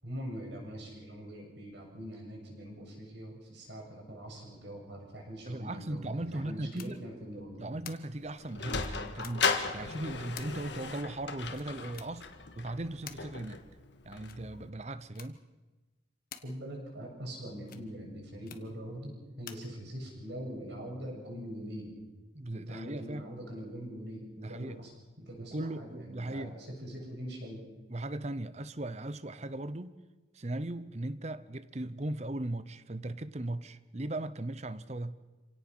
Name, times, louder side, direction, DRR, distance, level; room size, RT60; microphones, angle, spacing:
voice 1, 0.0-7.6 16.4-21.9 22.5-27.6, equal, 60° right, 7.2 m, -43 dB
voice 2, 5.4-7.0 7.6-12.3 12.6-13.6 14.0-15.4 22.3-23.3 24.4-24.8 25.5-26.6 26.9-27.1 27.9-29.9 30.3-35.2, right 1 dB, 35° right, 0.8 m, -38 dB
sound 1, 6.7-6.9 7.8-8.0 8.8-9.3 10.4-10.5 11.5-12.1 13.1-13.2 14.2-14.4 15.1-15.3 16.3-16.4 17.6-17.9 18.5-18.6 19.5-19.6, left 9 dB, 45° left, 1.4 m, -47 dB
Sliding door, 8.1-14.7, left 5 dB, 60° left, 1.7 m, -36 dB
27.0 x 17.5 x 6.2 m
head